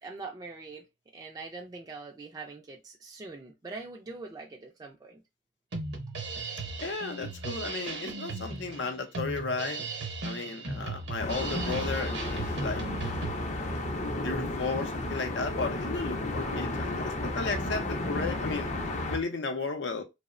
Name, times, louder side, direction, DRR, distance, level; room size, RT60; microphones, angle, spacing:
voice 1, 0.0-0.9 1.1-5.2, right 3 dB, 20° right, 0.3 m, -43 dB
Drum kit, 5.7-13.3, right 3 dB, 70° right, 0.7 m, -37 dB
voice 2, 6.8-9.8 10.2-12.8 13.5-14.0 14.2-18.7 19.1-20.0, left 4 dB, 85° left, 0.5 m, -34 dB
sound 1, 11.2-19.2, left 1 dB, 40° left, 0.5 m, -33 dB
2.7 x 2.0 x 2.4 m
head